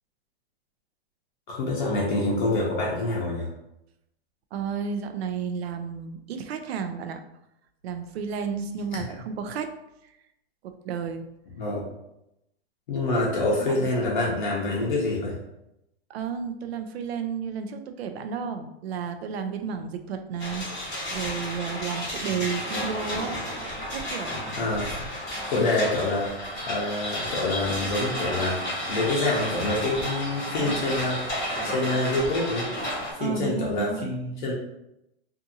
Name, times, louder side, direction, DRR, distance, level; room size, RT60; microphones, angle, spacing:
voice 1, 1.5-3.5 8.9-9.0 11.6-11.9 12.9-15.4 24.6-25.0 25.5-26.4 26.7-31.2 31.6-32.7 33.1-34.5, left 2 dB, 50° left, -4 dB, 0.6 m, -26 dB
voice 2, 4.5-7.2 7.8-9.7 10.0-10.1 10.6-11.2 13.5-14.1 16.1-23.4 23.9-24.3 33.2-34.1, right 6 dB, 70° right, 7 dB, 0.4 m, -32 dB
sound 1, 20.4-33.1, equal, 10° left, 0.7 m, -32 dB
2.6 x 2.5 x 2.6 m, 0.86 s
hypercardioid pair, 175°, 32 cm